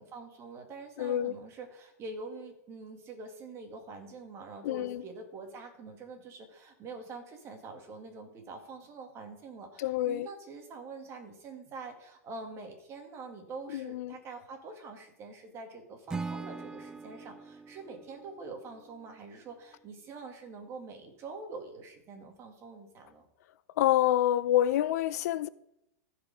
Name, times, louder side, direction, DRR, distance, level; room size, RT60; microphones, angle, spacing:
voice 1, 0.0-23.3, right 3 dB, 30° right, 2.0 m, -45 dB
voice 2, 1.0-1.4 4.6-5.0 9.8-10.3 13.7-14.2 23.7-25.5, left 12 dB, 65° left, 0.5 m, -27 dB
Acoustic guitar / Strum, 16.1-19.3, right 4 dB, 10° right, 0.3 m, -42 dB
15.0 x 5.1 x 5.3 m
hypercardioid pair, 140°, 9 cm